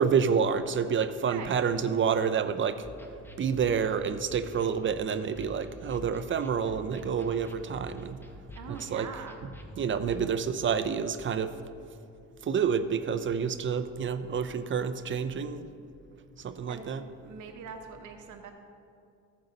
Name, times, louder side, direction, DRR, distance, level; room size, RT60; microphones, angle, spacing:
voice 1, 0.0-2.9 3.4-8.2 8.7-9.1 9.8-11.5 12.4-15.7 16.4-17.1, right 6 dB, 40° right, 11 dB, 0.5 m, -28 dB
voice 2, 1.2-1.7 8.5-9.5 16.7-17.0 17.2-18.5, right 6 dB, 75° right, 5 dB, 0.9 m, -42 dB
sound 1, 2.8-10.2, left 1 dB, 5° left, 0.8 m, -48 dB
14.5 x 5.5 x 3.9 m, 2.5 s
cardioid pair, 90°, 30 cm